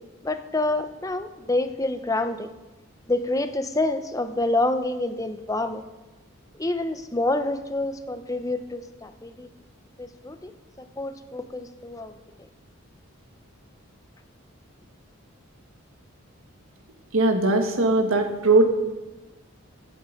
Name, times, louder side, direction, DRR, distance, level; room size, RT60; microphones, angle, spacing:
voice 1, 0.0-2.5 3.1-5.8 6.6-9.5 10.0-10.5 10.8-12.1, left 2 dB, 15° left, 9 dB, 0.6 m, -27 dB
voice 2, 17.1-18.7, right 2 dB, 75° right, 5 dB, 1.6 m, -20 dB
15.0 x 7.9 x 5.1 m, 1.1 s
head